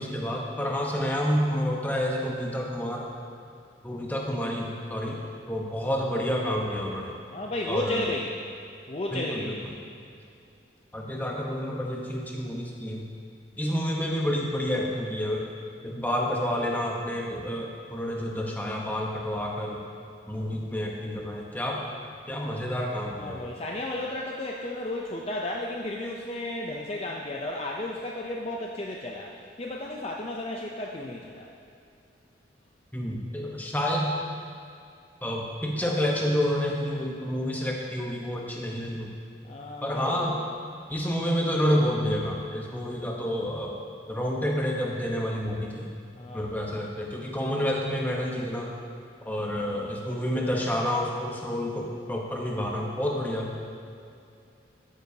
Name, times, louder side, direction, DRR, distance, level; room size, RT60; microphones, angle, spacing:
voice 1, 0.0-3.1 3.8-5.2 5.5-7.1 7.7-8.1 9.1-9.5 10.9-13.1 13.6-15.5 15.8-19.8 20.3-21.8 22.3-23.5 32.9-34.1 35.2-39.1 39.8-40.4 40.9-43.7 44.1-45.9 46.3-48.7 49.2-53.5, equal, 10° left, -1 dB, 1.0 m, -29 dB
voice 2, 7.3-8.3 8.9-9.6 23.2-31.5 39.4-40.3 46.2-46.7 47.4-47.7 49.5-50.2, left 1 dB, 30° left, -1 dB, 0.5 m, -34 dB
13.5 x 8.7 x 2.8 m, 2.5 s
head